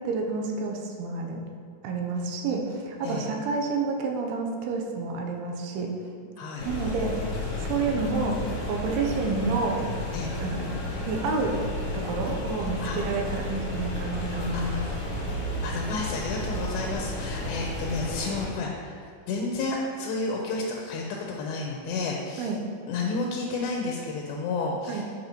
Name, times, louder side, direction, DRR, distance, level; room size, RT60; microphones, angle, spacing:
voice 1, 0.0-1.4 1.8-5.9 6.6-7.3 7.6-8.4 8.7-9.8 10.4-10.8 11.1-11.6 11.9-14.8 22.4-22.6 24.9-25.0, right 4 dB, 85° right, 1 dB, 2.6 m, -29 dB
voice 2, 6.4-6.7 10.1-10.3 12.8-13.0 14.5-15.0 15.6-22.5 22.9-25.0, left 3 dB, 80° left, -1 dB, 2.4 m, -31 dB
sound 1, 6.6-18.5, left 1 dB, 55° left, 1.8 m, -32 dB
8.9 x 5.6 x 3.0 m, 2.1 s
omnidirectional pair, 4.6 m